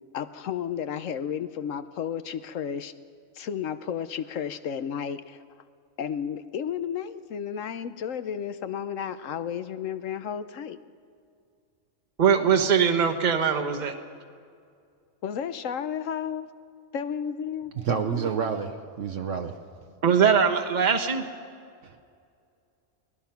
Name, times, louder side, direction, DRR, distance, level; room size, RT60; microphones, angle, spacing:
voice 1, 0.1-2.9 3.4-5.4 6.0-10.8 15.2-16.5 16.9-17.7, left 8 dB, 75° left, 12 dB, 1.1 m, -32 dB
voice 2, 12.2-13.9 20.0-21.2, right 7 dB, 35° right, 5 dB, 1.2 m, -21 dB
voice 3, 17.8-19.5 21.8-22.0, right 6 dB, 65° right, 5 dB, 1.2 m, -29 dB
23.5 x 19.0 x 5.8 m, 2.3 s
omnidirectional pair, 1.4 m